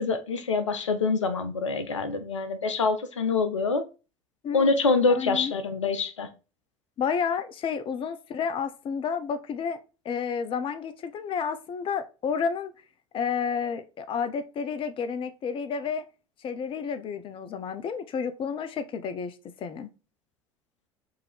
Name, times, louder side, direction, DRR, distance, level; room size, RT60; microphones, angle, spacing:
voice 1, 0.0-3.8 4.5-6.3, left 4 dB, 85° left, 0.5 m, -25 dB
voice 2, 5.1-5.5 7.0-9.8 10.0-12.7 13.1-16.0 16.4-19.9, left 6 dB, 35° left, 0.5 m, -31 dB
4.6 x 2.7 x 3.2 m
figure-of-eight pair, 70°, 15 cm